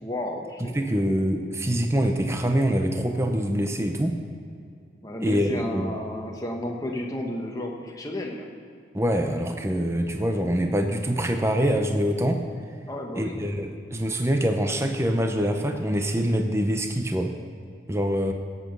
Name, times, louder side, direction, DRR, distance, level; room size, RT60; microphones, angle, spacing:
voice 1, 0.0-0.7 2.0-2.1 5.0-8.5 12.9-13.4, left 1 dB, 20° left, 0 dB, 1.4 m, -32 dB
voice 2, 0.7-4.2 5.2-5.9 8.9-12.4 13.2-17.3 17.9-18.3, equal, 15° right, 5 dB, 0.7 m, -24 dB
17.0 x 8.2 x 5.4 m, 2.3 s
head